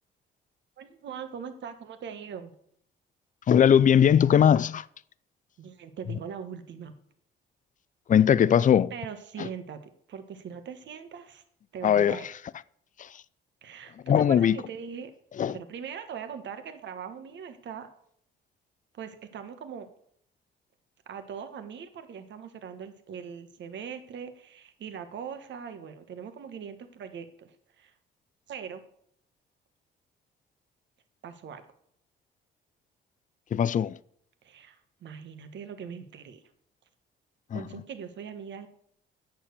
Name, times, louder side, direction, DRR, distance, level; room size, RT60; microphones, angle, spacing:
voice 1, 0.8-2.5 5.6-7.0 8.9-9.8 10.1-11.4 11.7-12.3 13.6-15.1 15.5-17.9 18.9-19.9 21.1-27.9 28.5-28.8 31.2-31.6 34.4-36.4 37.5-38.7, right 7 dB, 65° right, 1.4 m, -41 dB
voice 2, 3.5-4.8 8.1-8.9 9.4-9.5 11.8-12.2 13.0-13.1 14.1-14.6 15.4-15.5 33.5-34.0 37.5-37.6, left 8 dB, 40° left, 0.5 m, -20 dB
8.8 x 7.1 x 6.7 m
cardioid pair, 90°, 20 cm